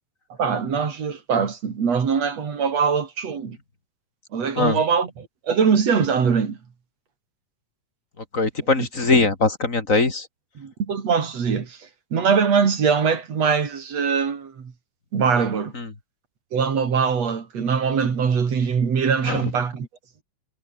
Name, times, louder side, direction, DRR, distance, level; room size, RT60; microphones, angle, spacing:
voice 1, 0.4-3.6 4.3-6.6 8.8-8.9 10.6-14.7 15.1-15.7 16.5-19.9, right 6 dB, 60° right, 4.0 m, -22 dB
voice 2, 8.3-10.3 15.7-15.9 19.3-19.5, left 3 dB, 25° left, 3.0 m, -21 dB
omnidirectional pair, 3.3 m